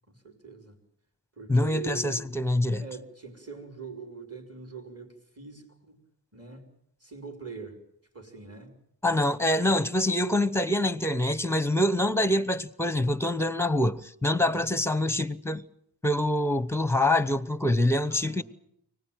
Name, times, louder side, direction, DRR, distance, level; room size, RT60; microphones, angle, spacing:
voice 1, 0.1-0.8 1.4-2.2 2.8-6.0 6.3-6.7 7.0-7.8 8.1-8.8 18.1-18.4, right 4 dB, 30° right, 4.8 m, -42 dB
voice 2, 1.5-2.8 9.0-15.6 16.0-18.4, left 1 dB, 5° left, 0.9 m, -25 dB
24.5 x 18.5 x 9.1 m
wide cardioid pair, 60°, 45 cm